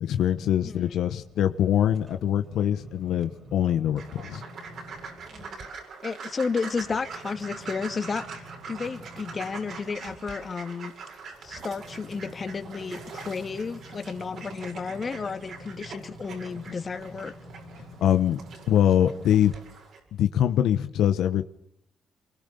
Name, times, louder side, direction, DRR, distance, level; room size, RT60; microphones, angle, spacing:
voice 1, 0.0-4.4 18.0-18.4 18.7-19.5 20.2-21.4, left 10 dB, 80° left, 9 dB, 1.2 m, -23 dB
sound 1, 1.0-5.7 6.1-19.6 20.1-20.2, equal, 40° right, 5.6 m, -48 dB
sound 2, 4.0-20.0, right 5 dB, 65° right, 7.6 m, -43 dB
voice 2, 5.3-5.7 6.0-10.9 11.4-17.3, left 5 dB, 35° left, 8 dB, 2.3 m, -32 dB
25.5 x 23.0 x 6.9 m, 0.71 s
cardioid pair, 90°, 0 cm